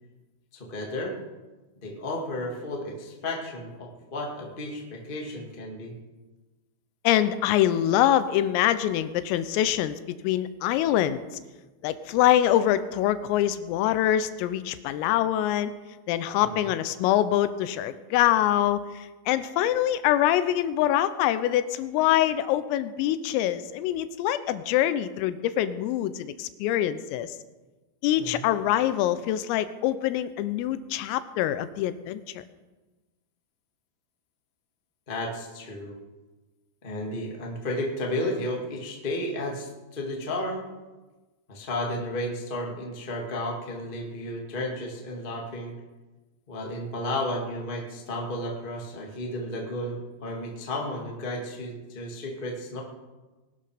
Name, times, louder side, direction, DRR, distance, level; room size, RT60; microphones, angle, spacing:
voice 1, 0.5-1.2 1.8-5.9 16.4-16.7 28.2-28.4 35.1-36.0 36.8-40.7 41.5-45.7 46.5-52.8, left 1 dB, 35° left, -1 dB, 0.8 m, -33 dB
voice 2, 7.0-10.0 10.2-11.2 11.8-15.7 16.1-27.4 28.0-32.4, left 12 dB, 85° left, 13 dB, 3.4 m, -24 dB
21.0 x 12.0 x 5.1 m, 1.2 s
omnidirectional pair, 6.0 m